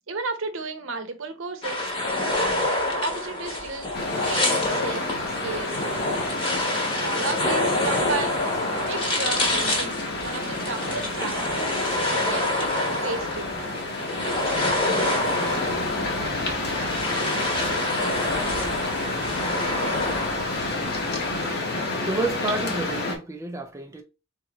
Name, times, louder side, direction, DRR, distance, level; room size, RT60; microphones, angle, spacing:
voice 1, 0.1-1.9 3.0-3.9 4.2-5.8 6.9-8.4 8.8-11.8 12.3-13.6, right 4 dB, 65° right, 0.8 m, -33 dB
sound 1, 1.6-21.5, left 1 dB, 25° left, 1.1 m, -27 dB
sound 2, 3.9-23.2, left 2 dB, 50° left, 1.1 m, -30 dB
voice 2, 22.0-24.0, right 2 dB, 15° right, 0.4 m, -29 dB
4.0 x 3.7 x 3.0 m
head